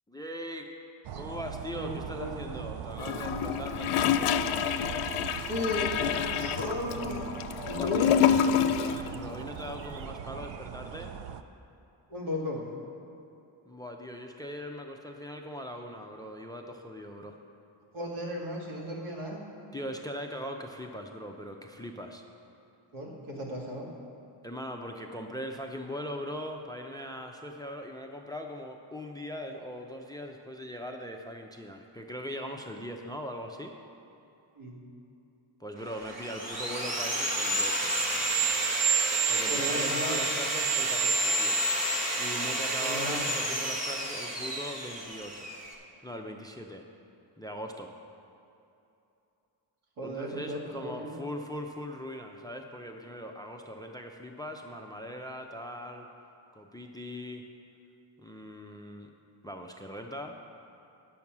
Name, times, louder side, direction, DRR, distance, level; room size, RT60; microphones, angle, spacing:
voice 1, 0.1-0.7 1.2-4.3 7.7-8.1 8.7-11.1 13.7-17.4 19.7-22.2 24.4-33.7 35.6-37.9 39.3-41.6 42.2-45.5 46.0-46.8 47.4-47.9 50.0-56.1 56.5-57.4 58.2-59.1 59.4-60.4, equal, 10° left, 4 dB, 0.4 m, -40 dB
sound 1, 1.0-11.4, right 8 dB, 65° right, 0.6 m, -40 dB
voice 2, 1.8-2.4 5.4-5.9 6.3-7.3 7.7-8.1 12.1-12.6 17.9-19.4 22.9-23.9 34.6-34.8 39.5-40.3 42.8-43.3 50.0-51.2, left 1 dB, 80° right, -3 dB, 2.2 m, -35 dB
Gurgling / Toilet flush, 3.0-9.1 9.3-9.4, left 9 dB, 85° left, 0.6 m, -27 dB
Sawing, 35.9-45.7, right 2 dB, 30° right, 1.4 m, -29 dB
9.5 x 7.0 x 6.0 m, 2.8 s
wide cardioid pair, 125°, 49 cm